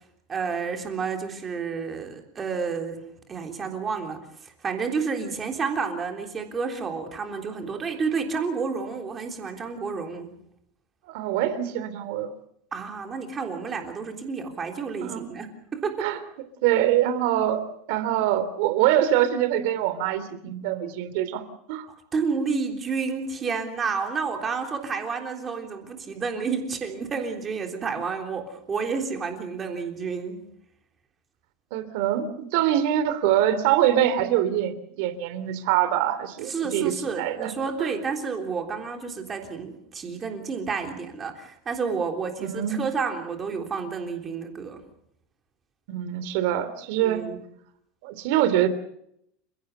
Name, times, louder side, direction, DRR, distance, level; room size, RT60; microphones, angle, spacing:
voice 1, 0.3-3.0 3.3-10.3 12.7-16.1 22.1-30.4 36.5-44.8 47.0-47.4, right 5 dB, 15° right, 3 dB, 3.5 m, -30 dB
voice 2, 11.0-12.3 15.0-15.3 16.0-16.2 16.6-21.9 31.7-37.5 37.8-37.9 42.4-42.8 45.9-47.3 48.0-48.7, right 11 dB, 55° right, 13 dB, 3.1 m, -24 dB
29.5 x 17.0 x 6.8 m, 0.74 s
supercardioid pair, 175°, 0 cm